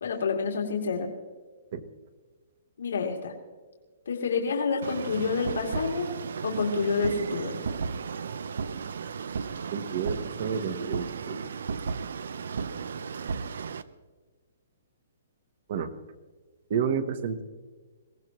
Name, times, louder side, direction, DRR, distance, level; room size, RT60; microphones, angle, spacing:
voice 1, 0.0-1.1 2.8-3.3 4.1-6.1 6.4-7.6, left 4 dB, 80° left, 1 dB, 2.6 m, -28 dB
sound 1, 4.8-13.8, right 5 dB, 70° right, 0.7 m, -34 dB
voice 2, 9.7-11.4 15.7-15.9 16.7-17.4, right 7 dB, 35° right, 11 dB, 1.0 m, -30 dB
22.0 x 18.0 x 3.1 m, 1.4 s
hypercardioid pair, 180°, 0 cm